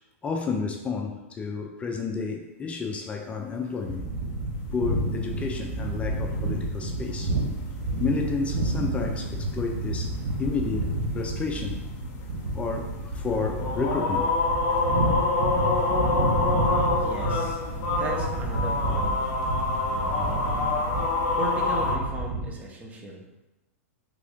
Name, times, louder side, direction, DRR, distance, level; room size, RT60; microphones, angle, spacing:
voice 1, 0.2-4.1 4.7-7.3 8.0-10.9 11.1-11.8 12.5-14.3, left 4 dB, 15° left, 3 dB, 0.3 m, -31 dB
sound 1, 3.9-22.5, right 2 dB, 50° right, 1.0 m, -30 dB
sound 2, 4.8-5.1 5.4-5.5 5.8-22.0, left 3 dB, 45° left, 0.7 m, -28 dB
voice 2, 17.0-17.6 17.9-19.3 21.3-23.2, right 2 dB, 20° right, 0 dB, 0.7 m, -37 dB
3.5 x 2.5 x 3.4 m, 1.0 s
hypercardioid pair, 130°, 8 cm